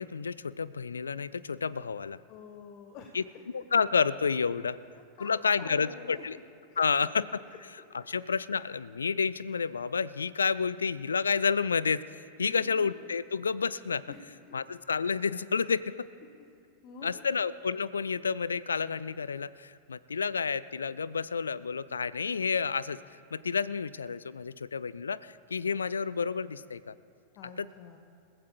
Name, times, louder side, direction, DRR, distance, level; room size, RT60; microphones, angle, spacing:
voice 1, 0.0-2.2 3.1-3.2 3.5-4.8 5.2-6.4 6.8-14.0 14.5-15.9 17.0-23.0 23.3-26.9 27.4-27.7, left 5 dB, 75° left, 18 dB, 0.4 m, -30 dB
voice 2, 2.3-3.1 4.9-6.3 6.7-6.8 12.4-13.0 14.1-14.2 16.4-16.6 16.8-17.2 27.4-28.0, left 5 dB, 40° left, 4 dB, 1.1 m, -48 dB
29.0 x 15.5 x 2.3 m, 2.3 s
figure-of-eight pair, 90°, 0 cm